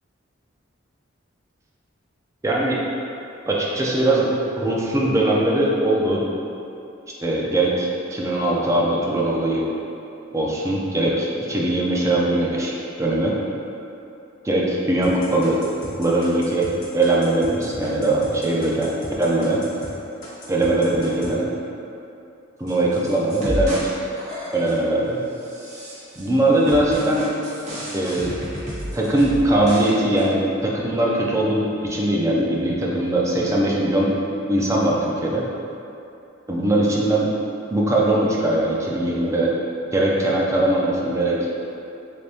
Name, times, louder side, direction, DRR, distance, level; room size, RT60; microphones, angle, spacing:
voice 1, 2.4-2.8 3.5-4.3 4.6-6.2 7.2-9.7 10.3-13.3 14.4-15.6 16.0-16.7 16.9-18.9 19.2-19.6 20.5-21.5 22.6-23.8 24.5-25.2 26.2-27.3 27.9-28.3 28.9-30.4 30.6-34.1 34.5-35.5 36.5-37.3 37.7-39.5 39.9-41.4, right 1 dB, 15° right, -4 dB, 0.4 m, -21 dB
sound 1, 15.0-19.9 20.2-21.3, left 1 dB, 85° left, 0.9 m, -38 dB
sound 2, 22.7-23.9 24.2-24.9 25.4-26.3 26.7-29.9 30.2-30.3, equal, 40° right, 1.0 m, -31 dB
3.4 x 3.3 x 2.7 m, 2.8 s
head